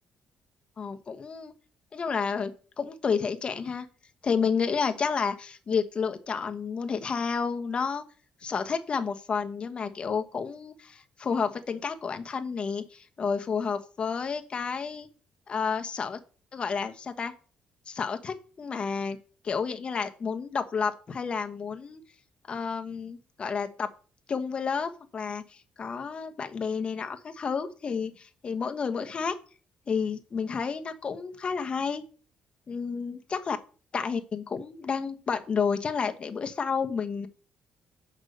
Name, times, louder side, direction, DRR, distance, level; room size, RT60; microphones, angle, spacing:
voice 1, 0.8-1.5 1.9-2.5 2.8-3.9 4.2-8.0 8.4-15.1 15.5-16.2 16.5-17.3 17.9-19.2 19.4-22.0 22.5-23.9 24.3-29.3 29.9-32.0 32.7-33.6 33.9-37.3, left 5 dB, 35° left, 7 dB, 1.0 m, -30 dB
8.1 x 5.3 x 6.5 m, 0.39 s
cardioid pair, 115°, 3 cm